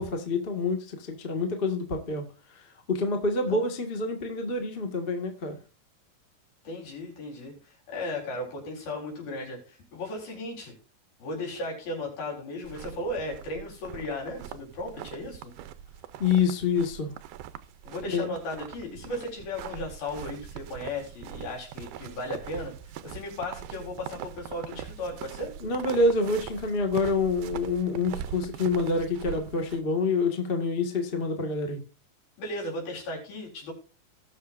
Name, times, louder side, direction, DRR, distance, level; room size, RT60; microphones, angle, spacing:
voice 1, 0.0-2.2 2.5-5.6 16.2-17.1 18.1-18.3 25.6-31.8, left 3 dB, 40° left, 4 dB, 0.8 m, -27 dB
voice 2, 6.6-10.7 11.2-15.5 17.8-25.5 32.4-33.7, left 1 dB, 80° left, -1 dB, 5.8 m, -36 dB
sound 1, 12.6-29.8, right 10 dB, 75° right, 1.9 m, -42 dB
19.0 x 6.6 x 2.6 m, 0.33 s
omnidirectional pair, 4.2 m